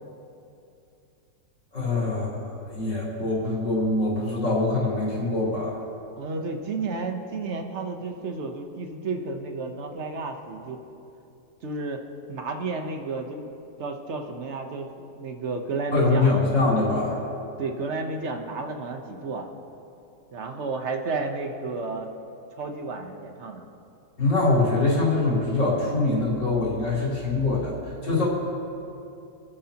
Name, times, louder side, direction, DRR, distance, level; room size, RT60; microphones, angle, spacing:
voice 1, 1.7-2.3 2.6-5.8 15.9-17.2 24.2-28.3, left 2 dB, 70° left, -7 dB, 4.2 m, -24 dB
voice 2, 6.2-10.8 11.6-12.0 12.3-13.4 13.8-16.4 17.6-19.5 20.3-22.1 22.6-23.6, right 3 dB, 45° right, 4 dB, 1.1 m, -32 dB
27.0 x 10.0 x 2.9 m, 2.7 s
omnidirectional pair, 2.0 m